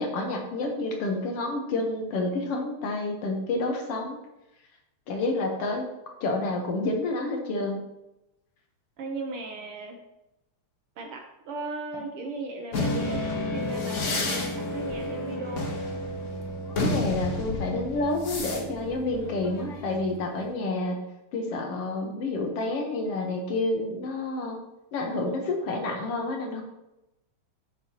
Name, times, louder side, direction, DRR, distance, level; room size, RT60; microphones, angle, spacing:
voice 1, 0.0-4.2 5.1-5.8 6.2-7.8 16.8-21.0 21.3-24.6 24.9-26.6, left 2 dB, 60° left, 2 dB, 1.9 m, -29 dB
voice 2, 9.0-10.0 11.0-15.7, right 3 dB, 65° right, 2 dB, 1.5 m, -37 dB
sound 1, 12.7-20.3, left 2 dB, 85° left, 0.6 m, -31 dB
9.9 x 7.4 x 2.9 m, 0.90 s
omnidirectional pair, 3.4 m